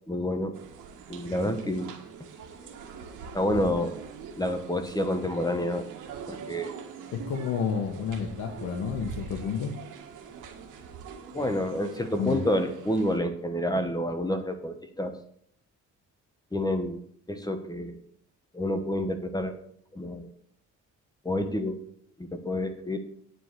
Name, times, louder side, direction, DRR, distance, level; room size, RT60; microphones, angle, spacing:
voice 1, 0.1-0.5 1.1-1.9 3.3-4.0 4.4-5.9 6.3-6.8 11.3-15.2 16.5-17.0 17.3-18.0 18.5-19.6 19.9-20.3 21.2-21.8 22.2-23.0, left 1 dB, 15° left, 7 dB, 1.2 m, -29 dB
sound 1, 0.5-13.2, right 6 dB, 85° right, 1.6 m, -43 dB
voice 2, 7.1-9.7 12.2-12.4, left 6 dB, 70° left, 1 dB, 1.4 m, -30 dB
9.2 x 4.7 x 7.6 m, 0.65 s
cardioid pair, 90°, 30 cm